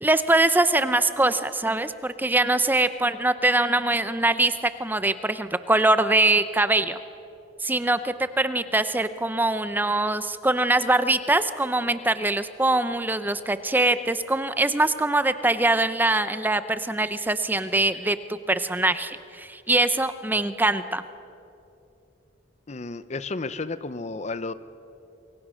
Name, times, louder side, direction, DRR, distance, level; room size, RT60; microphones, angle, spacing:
voice 1, 0.0-7.0 7.6-21.0, right 2 dB, 10° right, 12 dB, 0.6 m, -23 dB
voice 2, 22.7-24.5, left 3 dB, 35° left, 14 dB, 0.6 m, -32 dB
28.0 x 22.5 x 6.3 m, 2.8 s
head